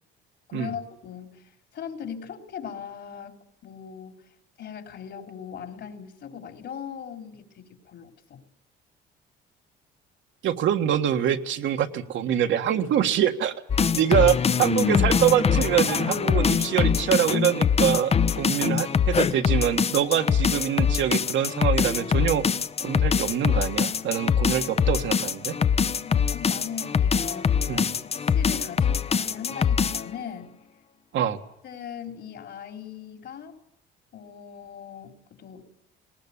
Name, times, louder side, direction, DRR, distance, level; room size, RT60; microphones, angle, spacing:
voice 1, 0.5-4.2 4.6-8.4 18.3-18.5 25.8-30.5 31.2-31.4 31.6-33.5 34.1-35.7, left 8 dB, 60° left, 5 dB, 3.8 m, -40 dB
voice 2, 10.4-13.5 13.9-22.4 22.8-25.5 27.7-27.8 31.1-31.4, right 10 dB, 70° right, 6 dB, 1.6 m, -24 dB
sound 1, 13.7-30.1, left 6 dB, 30° left, 0.7 m, -23 dB
19.5 x 19.0 x 8.5 m, 0.86 s
cardioid pair, 90°, 20 cm